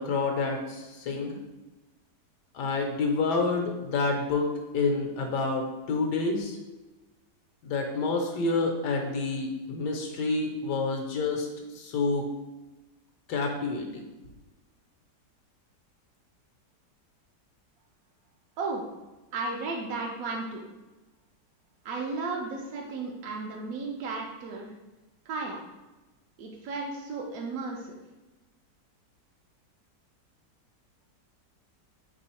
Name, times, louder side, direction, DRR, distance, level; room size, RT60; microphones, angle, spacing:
voice 1, 0.0-1.4 2.5-6.6 7.6-12.3 13.3-14.0, left 3 dB, 75° left, 3 dB, 1.1 m, -28 dB
voice 2, 19.3-20.6 21.8-24.7 25.3-25.6 26.4-28.0, right 3 dB, 70° right, -1 dB, 0.8 m, -34 dB
3.6 x 3.0 x 4.2 m, 1.1 s
omnidirectional pair, 1.9 m